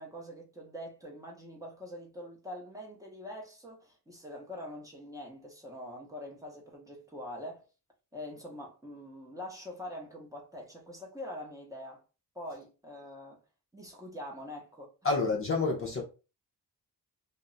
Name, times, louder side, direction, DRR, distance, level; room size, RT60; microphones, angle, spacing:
voice 1, 0.0-7.6 8.1-12.0 12.3-13.4 13.7-14.9, left 1 dB, 10° right, 0.6 m, -44 dB
voice 2, 15.0-16.0, left 3 dB, 35° left, 0.4 m, -28 dB
2.2 x 2.0 x 3.6 m
wide cardioid pair, 170°, 40 cm